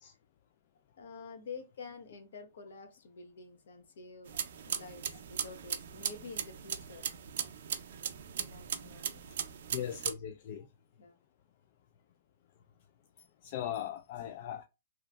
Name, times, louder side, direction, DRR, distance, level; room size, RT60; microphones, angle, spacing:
voice 1, 1.0-4.3 4.7-7.1 8.4-9.2 11.0-11.2, left 4 dB, 70° left, 0.8 m, -48 dB
sound 1, 4.3-10.1, right 8 dB, 65° right, 0.4 m, -38 dB
voice 2, 9.7-10.7 13.4-14.6, left 10 dB, 45° left, 0.3 m, -39 dB
3.0 x 2.5 x 2.2 m
hypercardioid pair, 140°, 0 cm